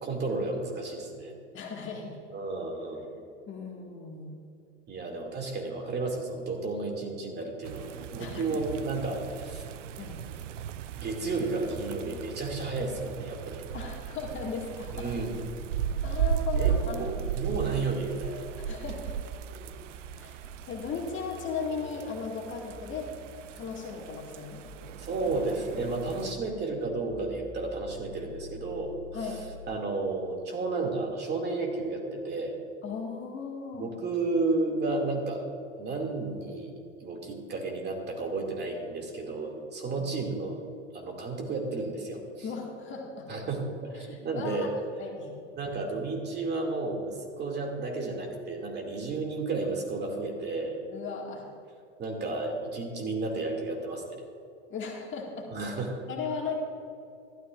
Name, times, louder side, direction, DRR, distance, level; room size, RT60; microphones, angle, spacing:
voice 1, 0.0-1.3 2.3-3.0 4.9-9.6 11.0-13.6 14.9-15.4 16.6-18.5 19.5-19.8 25.0-28.9 29.2-29.4 29.7-32.6 33.8-35.5 35.8-36.7 37.0-40.6 40.9-42.2 43.3-44.7 45.6-50.8 52.0-54.2 55.5-56.0, right 3 dB, 25° right, 1 dB, 2.4 m, -32 dB
voice 2, 1.5-2.2 3.5-4.3 5.0-5.1 8.2-8.6 10.0-10.2 13.7-15.1 16.0-17.3 18.6-19.0 20.2-23.1 23.5-24.6 29.1-29.4 32.8-33.9 39.8-40.1 42.4-43.3 44.0-44.7 45.0-45.3 50.9-51.5 54.7-55.5 56.1-56.6, left 5 dB, 30° left, -1 dB, 2.0 m, -37 dB
sound 1, 7.6-26.3, right 8 dB, 80° right, 0.6 m, -36 dB
sound 2, 11.7-29.7, right 1 dB, 45° right, 3.0 m, -49 dB
15.0 x 12.5 x 2.5 m, 2.5 s
hypercardioid pair, 100°, 37 cm